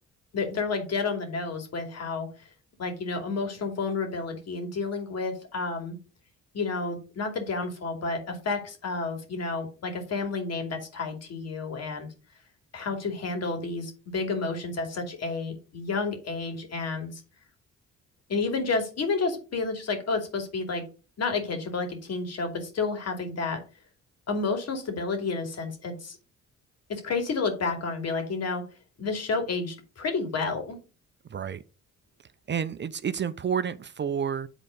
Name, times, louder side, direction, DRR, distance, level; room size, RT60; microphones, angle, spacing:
voice 1, 0.3-2.3 2.8-6.0 6.5-12.1 12.7-17.2 18.3-20.8 21.2-23.6 24.3-26.2 26.9-28.6 29.0-30.8, left 4 dB, 55° left, 2.7 m, -30 dB
voice 2, 31.3-31.6 32.5-34.5, right 7 dB, 35° right, 0.6 m, -30 dB
8.9 x 4.0 x 5.1 m
cardioid pair, 90°, 30 cm